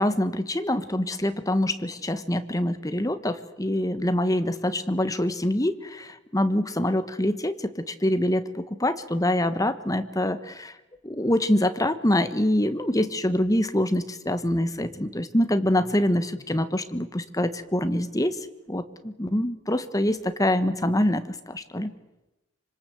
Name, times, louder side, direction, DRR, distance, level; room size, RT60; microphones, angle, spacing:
voice 1, 0.0-10.7 11.0-18.3 18.7-21.9, left 1 dB, 15° left, 10 dB, 1.3 m, -25 dB
25.5 x 25.5 x 7.9 m, 0.99 s
head